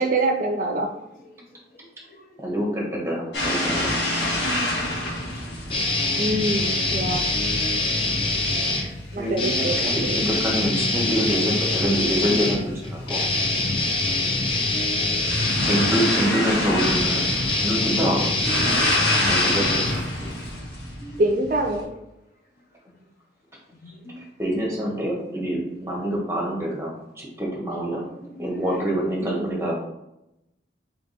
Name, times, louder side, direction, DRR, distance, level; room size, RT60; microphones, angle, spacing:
voice 1, 0.0-0.9 6.2-7.3 9.1-10.2 16.2-16.5 21.2-21.9 29.2-29.4, right 2 dB, 45° right, 4 dB, 0.4 m, -25 dB
voice 2, 1.0-1.4 1.7-2.2 4.6-5.7 21.0-21.2 23.8-24.2 27.8-28.5, equal, 50° left, -1 dB, 0.9 m, -45 dB
voice 3, 2.4-3.9 4.2-4.4 8.8-13.2 15.2-17.2 17.6-18.3 19.2-19.8 24.4-28.0 28.4-29.8, equal, 15° right, -2 dB, 1.0 m, -26 dB
sound 1, 3.3-21.8, left 1 dB, 75° left, 1.4 m, -29 dB
sound 2, 5.7-8.9 9.3-20.5, left 2 dB, 30° left, 0.6 m, -24 dB
3.4 x 3.3 x 4.0 m, 0.87 s
head